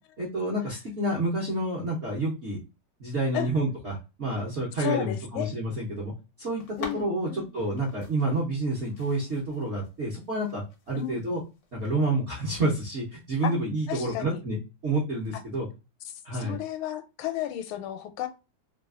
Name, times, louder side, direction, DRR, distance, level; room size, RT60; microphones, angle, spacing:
voice 1, 0.2-2.6 3.0-6.1 6.4-11.4 11.7-14.6 14.8-15.7 16.2-16.5, right 2 dB, 60° right, 0.7 m, -29 dB
voice 2, 4.8-5.5 6.8-7.5 10.9-11.2 13.4-13.5 13.9-14.4 15.3-15.4 16.3-18.3, left 11 dB, 85° left, 1.4 m, -33 dB
sound 1, 6.6-14.3, left 5 dB, 65° left, 1.0 m, -49 dB
3.3 x 2.3 x 2.3 m
omnidirectional pair, 2.3 m